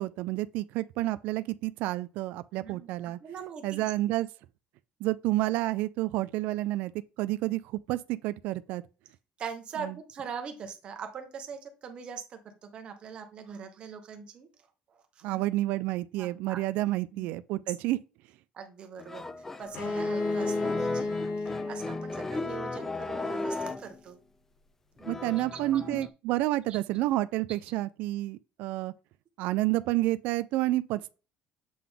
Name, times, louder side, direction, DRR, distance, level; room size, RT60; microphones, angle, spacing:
voice 1, 0.0-3.2 3.6-4.3 5.0-6.9 7.2-7.6 7.9-8.8 9.8-9.9 15.2-18.0 25.1-28.9 29.4-31.2, right 17 dB, 70° right, 0.3 m, -29 dB
voice 2, 2.6-2.9 3.2-3.9 9.4-14.5 14.9-15.4 16.2-17.6 18.5-19.2 19.6-24.2 25.0-26.0 26.7-26.8, right 6 dB, 35° right, 1.1 m, -42 dB
sound 1, 19.0-24.0 25.0-26.1, left 2 dB, 10° left, 0.3 m, -36 dB
Bowed string instrument, 19.7-23.4, left 3 dB, 55° left, 1.3 m, -33 dB
7.6 x 3.7 x 3.5 m
cardioid pair, 170°, 3 cm